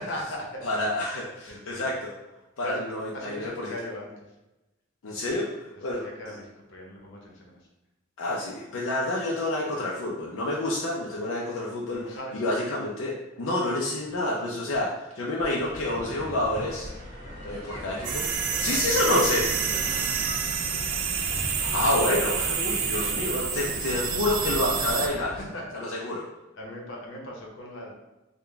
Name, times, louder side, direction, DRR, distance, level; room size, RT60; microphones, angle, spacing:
voice 1, 0.0-0.8 1.4-2.0 2.6-2.8 3.1-4.3 5.2-5.4 5.7-7.7 11.9-12.4 14.7-14.8 17.5-17.8 18.5-19.2 19.5-21.1 25.0-26.2 26.5-27.9, left 1 dB, 65° left, -1 dB, 0.9 m, -40 dB
voice 2, 0.7-2.0 2.6-3.7 5.0-5.5 5.8-6.4 8.2-16.9 17.4-18.3 18.6-19.6 21.6-25.4 25.7-26.2, left 1 dB, 90° left, -3 dB, 0.5 m, -28 dB
sound 1, 15.6-25.4, equal, 55° right, 1.4 m, -39 dB
sound 2, 18.0-25.1, right 6 dB, 85° right, 0.5 m, -28 dB
3.7 x 2.2 x 3.3 m, 1.0 s
head